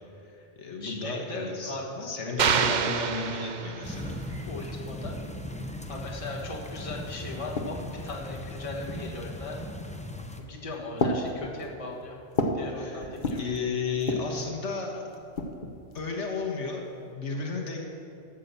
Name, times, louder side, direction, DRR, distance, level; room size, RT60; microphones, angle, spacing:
voice 1, 0.2-4.2 12.7-13.1 13.4-15.0 15.9-17.9, left 3 dB, 70° left, 0 dB, 1.5 m, -33 dB
voice 2, 0.8-2.1 4.4-5.2 5.9-7.8 8.0-9.6 10.4-12.2 12.5-13.4, left 2 dB, 25° left, -2 dB, 1.5 m, -38 dB
sound 1, 2.4-4.1, right 6 dB, 55° right, 0.5 m, -27 dB
sound 2, 3.8-10.4, left 1 dB, 10° left, 0.5 m, -38 dB
sound 3, 6.5-6.6 6.9-8.0 8.8-9.3 10.2-10.5 11.0-12.7 13.0-13.6 14.0-14.4 15.1-16.1, left 2 dB, 45° left, 1.0 m, -32 dB
12.5 x 7.3 x 6.8 m, 2.7 s
omnidirectional pair, 1.3 m